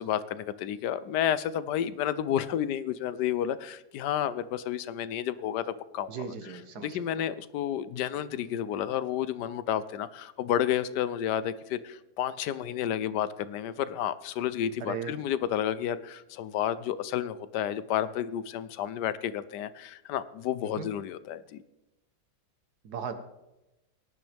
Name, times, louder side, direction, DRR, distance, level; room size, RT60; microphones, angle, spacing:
voice 1, 0.0-21.6, left 10 dB, 90° left, 15 dB, 1.3 m, -31 dB
voice 2, 6.1-7.0 14.8-15.1 20.8-20.9 22.8-23.1, right 6 dB, 70° right, 9 dB, 1.6 m, -36 dB
17.0 x 10.5 x 3.4 m, 0.97 s
omnidirectional pair, 1.7 m